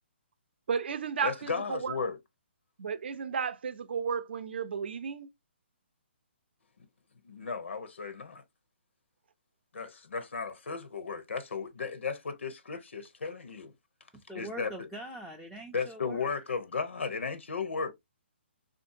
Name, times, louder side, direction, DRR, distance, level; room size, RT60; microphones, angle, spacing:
voice 1, 0.7-2.0 2.8-5.3, right 6 dB, 60° right, 0.5 m, -33 dB
voice 2, 1.2-2.2 7.2-8.4 9.7-13.7 14.3-14.7 15.7-17.9, left 5 dB, 90° left, 0.7 m, -35 dB
voice 3, 14.3-16.3, right 1 dB, ahead, 0.3 m, -43 dB
3.6 x 2.6 x 2.6 m
hypercardioid pair, 160°, 6 cm